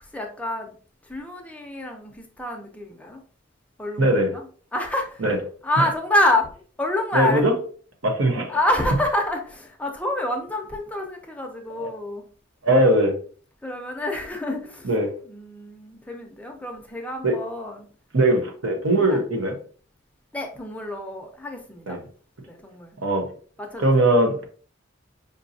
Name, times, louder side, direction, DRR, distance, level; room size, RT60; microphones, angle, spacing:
voice 1, 0.1-0.7 1.0-3.2 3.8-4.4 4.7-5.2 5.6-7.5 8.5-12.3 13.6-14.9 15.3-17.9 19.0-19.2 20.3-22.0 22.4-23.0 23.6-24.2, left 1 dB, 5° left, 2 dB, 0.6 m, -27 dB
voice 2, 4.0-4.3 5.2-5.4 5.8-5.9 7.1-7.5 8.0-8.6 11.8-11.9 12.6-13.1 14.8-15.1 17.2-17.4 18.1-19.6 21.9-22.0 23.0-23.2 23.8-24.4, right 1 dB, 85° right, 3 dB, 1.0 m, -20 dB
5.3 x 2.7 x 2.7 m, 0.43 s
head